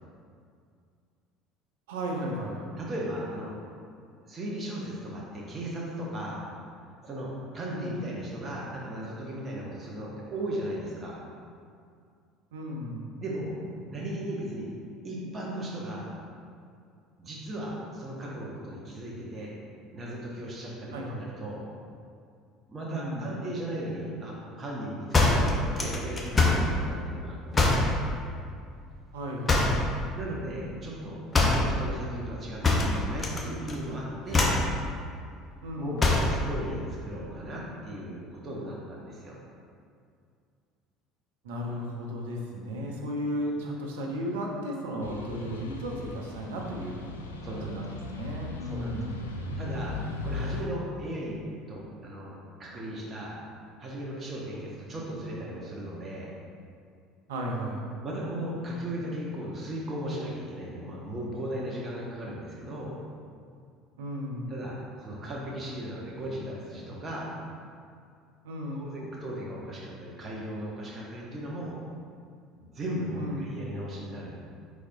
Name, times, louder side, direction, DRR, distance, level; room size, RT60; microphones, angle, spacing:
voice 1, 1.9-2.7 7.7-8.0 12.5-13.0 20.9-21.3 22.9-23.3 29.1-29.9 35.6-36.0 41.4-47.0 47.5-49.2 57.3-57.9 64.0-64.5 68.4-68.9 73.2-73.5, equal, 70° right, -1 dB, 0.6 m, -35 dB
voice 2, 2.8-3.5 4.2-6.4 7.0-7.3 7.5-11.2 13.2-13.5 13.9-14.7 15.0-16.1 17.2-19.5 19.9-21.6 22.7-27.8 30.1-31.2 31.5-34.5 35.8-39.4 45.1-45.3 47.4-47.7 48.6-49.2 49.6-49.9 50.2-51.4 51.7-53.4 53.8-56.3 58.0-63.0 64.5-67.3 68.7-71.8 72.6-74.4, right 1 dB, 35° right, -4 dB, 0.9 m, -36 dB
sound 1, 25.1-26.7 27.5-27.9 29.5-29.9 31.3-31.7 32.6-33.4 33.7-34.0 34.3-34.7 36.0-36.4, left 3 dB, 25° left, 0.7 m, -23 dB
sound 2, 45.0-50.6, left 3 dB, 80° left, 0.3 m, -38 dB
4.8 x 4.1 x 2.7 m, 2.3 s
figure-of-eight pair, 65°, 0 cm